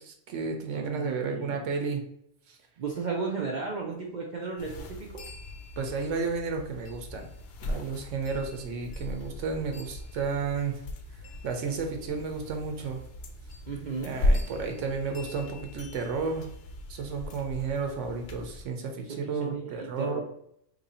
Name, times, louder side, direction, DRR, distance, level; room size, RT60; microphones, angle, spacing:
voice 1, 0.0-2.0 2.5-2.6 5.8-7.3 7.6-10.8 11.4-13.0 14.0-16.5 16.9-20.2, right 5 dB, 80° right, 3 dB, 1.0 m, -32 dB
voice 2, 0.7-1.7 2.8-5.2 13.7-14.2 19.0-20.2, right 4 dB, 55° right, -1 dB, 0.5 m, -35 dB
sound 1, 4.6-18.7, left 1 dB, 65° left, 0.8 m, -36 dB
3.0 x 2.6 x 4.1 m, 0.74 s
omnidirectional pair, 1.3 m